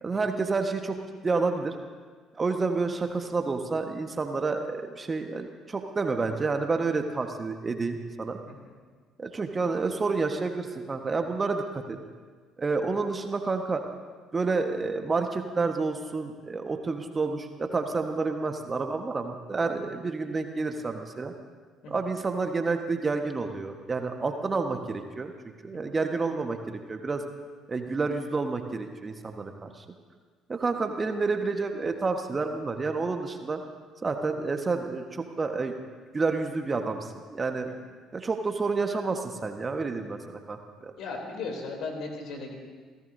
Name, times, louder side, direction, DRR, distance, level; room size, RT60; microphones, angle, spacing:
voice 1, 0.0-1.0 1.2-1.7 2.4-8.4 9.2-12.0 12.6-13.8 14.3-21.3 21.9-25.3 25.6-27.2 27.7-29.8 30.5-33.6 34.0-35.7 36.1-37.7 38.1-40.9, right 4 dB, 30° right, 5 dB, 1.4 m, -29 dB
voice 2, 41.0-42.5, left 3 dB, 60° left, 1 dB, 3.4 m, -36 dB
29.5 x 15.5 x 2.8 m, 1.5 s
figure-of-eight pair, 50°, 0 cm